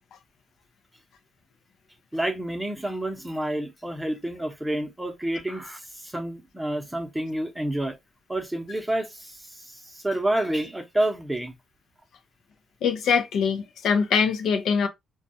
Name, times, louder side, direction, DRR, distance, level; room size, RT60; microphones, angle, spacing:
voice 1, 2.1-8.0 8.3-11.5, right 1 dB, 10° right, 0.7 m, -29 dB
voice 2, 12.8-14.9, left 6 dB, 75° left, 0.5 m, -23 dB
2.3 x 2.2 x 2.7 m
cardioid pair, 90°, 0 cm